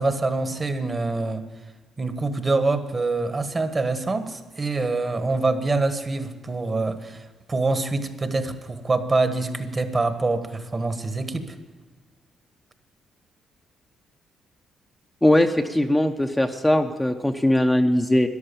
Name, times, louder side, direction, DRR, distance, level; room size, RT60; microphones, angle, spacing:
voice 1, 0.0-1.4 2.0-11.5, right 3 dB, 30° right, 9 dB, 1.4 m, -25 dB
voice 2, 15.2-18.3, left 1 dB, 10° left, 4 dB, 0.8 m, -20 dB
13.5 x 11.0 x 7.0 m, 1.4 s
cardioid pair, 90°, 0 cm